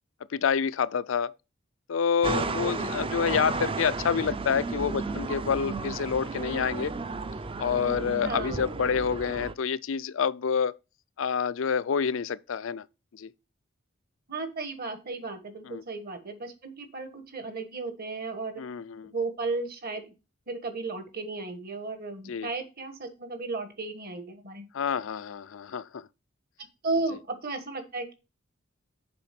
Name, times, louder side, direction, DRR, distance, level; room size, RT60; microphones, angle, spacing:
voice 1, 0.3-1.3 1.9-6.9 7.6-10.8 11.2-12.8 13.1-13.3 15.6-15.8 18.6-19.1 22.3-22.5 24.7-26.1, left 6 dB, 70° left, 0.4 m, -28 dB
sound 1, 2.2-9.5, right 3 dB, 25° right, 0.5 m, -33 dB
voice 2, 2.5-2.9 8.2-8.7 14.3-18.6 19.0-20.0 20.5-24.7 26.8-28.1, right 3 dB, 45° right, 1.4 m, -34 dB
6.9 x 5.1 x 5.8 m
head